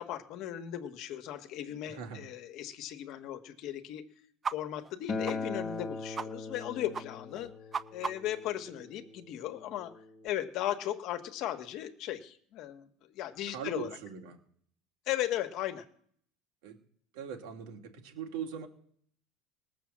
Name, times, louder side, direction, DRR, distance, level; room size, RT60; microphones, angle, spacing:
voice 1, 0.0-4.0 4.5-7.5 7.9-9.9 10.2-13.9 15.1-15.8, left 12 dB, 55° left, 8 dB, 1.2 m, -37 dB
voice 2, 1.9-2.2 13.5-14.4 16.6-16.8 17.1-18.7, right 8 dB, 80° right, 2 dB, 2.4 m, -40 dB
sound 1, 4.4-4.6 4.8-4.9 5.2-5.4 5.7-5.8 6.1-6.3 6.5-6.7 6.9-7.0 7.3-8.4, right 5 dB, 25° right, 0.5 m, -36 dB
Acoustic guitar, 5.1-10.3, left 4 dB, 20° left, 1.0 m, -40 dB
18.5 x 6.9 x 7.4 m, 0.62 s
supercardioid pair, 125°, 0 cm